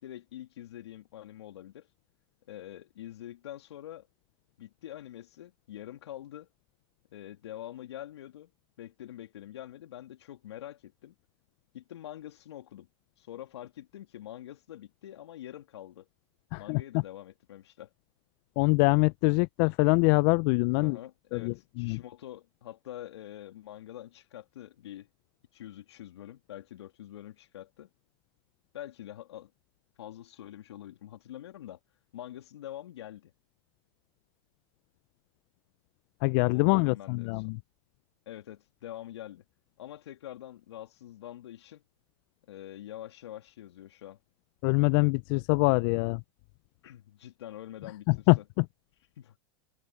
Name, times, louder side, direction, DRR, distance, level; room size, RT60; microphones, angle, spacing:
voice 1, 0.0-1.9 2.5-4.1 4.6-6.5 7.1-8.5 8.8-11.1 11.7-12.9 13.2-16.1 16.6-17.9 20.7-25.1 25.5-27.9 28.7-29.5 30.0-31.8 32.1-33.3 36.5-37.5 38.3-39.4 39.8-41.8 42.5-44.2 46.8-48.5 49.2-49.4, left 12 dB, 75° left, 2.8 m, -45 dB
voice 2, 16.5-16.8 18.6-21.0 21.3-22.0 36.2-37.6 44.6-46.2 48.1-48.6, left 30 dB, 55° left, 0.7 m, -24 dB
hypercardioid pair, 100°, 14 cm